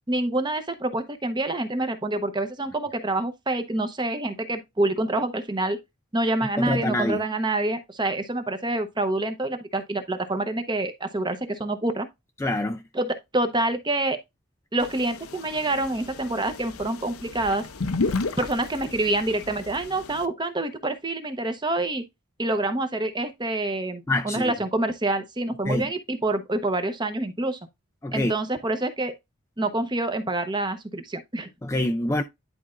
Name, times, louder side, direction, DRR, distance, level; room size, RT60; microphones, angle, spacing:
voice 1, 0.1-5.8 6.1-12.1 12.9-14.2 14.7-17.6 18.4-22.0 22.4-27.6 28.1-29.1 29.6-31.5, right 2 dB, 20° right, 0.8 m, -27 dB
voice 2, 6.6-7.2 12.4-12.8 24.1-24.5 25.7-25.9 28.0-28.3 31.6-32.2, left 1 dB, 10° left, 0.4 m, -25 dB
sound 1, 14.8-20.3, left 3 dB, 75° left, 0.7 m, -33 dB
11.0 x 4.2 x 2.5 m
head